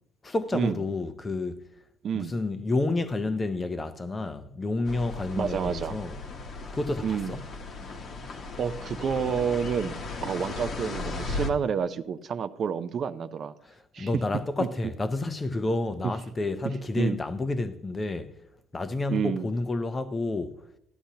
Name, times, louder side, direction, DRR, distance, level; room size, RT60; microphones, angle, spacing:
voice 1, 0.2-1.6 2.1-6.1 6.7-7.4 14.0-18.3 18.7-20.6, left 2 dB, 15° left, 0.5 m, -30 dB
voice 2, 2.0-2.4 5.4-6.0 7.0-7.4 8.6-13.5 13.9-14.1 14.6-14.7 16.0-16.1 16.6-17.2 19.1-19.5, right 7 dB, 35° right, 0.4 m, -29 dB
sound 1, 4.8-11.5, left 3 dB, 35° left, 1.0 m, -36 dB
14.0 x 11.5 x 2.8 m
cardioid pair, 160°, 0 cm